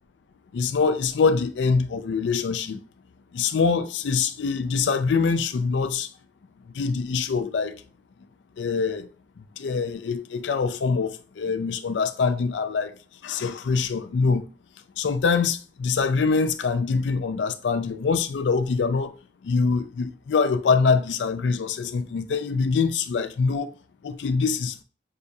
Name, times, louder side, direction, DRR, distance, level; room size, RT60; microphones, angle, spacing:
voice 1, 0.5-2.8 3.3-6.1 6.8-7.8 8.6-9.1 9.6-12.9 13.2-14.4 15.0-19.1 19.4-23.7 24.0-24.7, left 5 dB, 85° left, 0.4 m, -24 dB
6.5 x 2.3 x 2.7 m
head